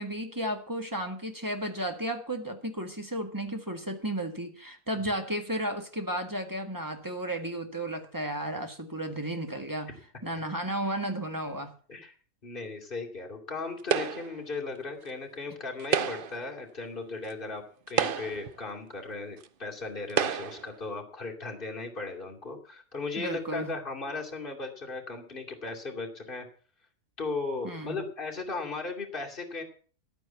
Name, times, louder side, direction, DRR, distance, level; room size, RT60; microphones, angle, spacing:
voice 1, 0.0-9.9 10.2-11.7 23.2-23.7 27.6-28.0, right 1 dB, 15° right, 5 dB, 1.6 m, -33 dB
voice 2, 12.4-26.5 27.2-29.6, left 3 dB, 35° left, 0 dB, 2.8 m, -37 dB
sound 1, 13.9-14.4 15.8-16.4 17.3-17.4 17.9-18.5 19.4-19.5 20.1-20.7, right 7 dB, 50° right, 0.7 m, -29 dB
12.0 x 9.1 x 7.0 m, 0.43 s
omnidirectional pair, 1.5 m